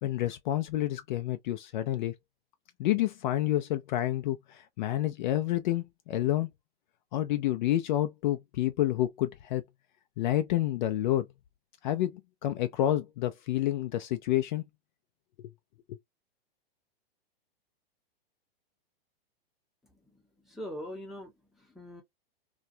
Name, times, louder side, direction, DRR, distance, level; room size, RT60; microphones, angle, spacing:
voice 1, 0.0-2.1 2.8-6.5 7.1-9.6 10.2-11.3 11.8-14.6 15.4-15.5 15.9-16.0, left 13 dB, 50° left, 0.4 m, -29 dB
voice 2, 19.9-22.0, equal, ahead, 0.8 m, -43 dB
2.3 x 2.1 x 2.6 m
hypercardioid pair, 135°, 30 cm